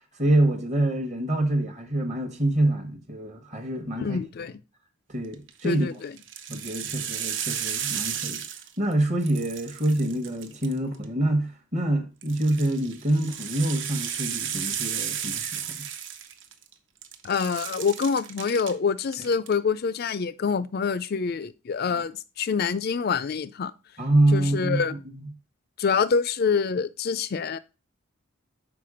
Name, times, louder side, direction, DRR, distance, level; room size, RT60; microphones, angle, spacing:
voice 1, 0.2-4.2 5.1-5.9 6.5-8.4 8.8-15.9 24.0-25.3, right 1 dB, 30° right, 1.0 m, -26 dB
voice 2, 4.0-4.6 5.6-6.1 17.2-23.7 24.3-24.9 25.8-27.6, left 5 dB, 45° left, 0.4 m, -26 dB
sound 1, 5.3-5.7 6.2-8.9 9.2-11.0 12.2-16.7 17.0-18.7 19.1-19.5, right 9 dB, 55° right, 0.7 m, -33 dB
5.9 x 4.5 x 4.9 m
head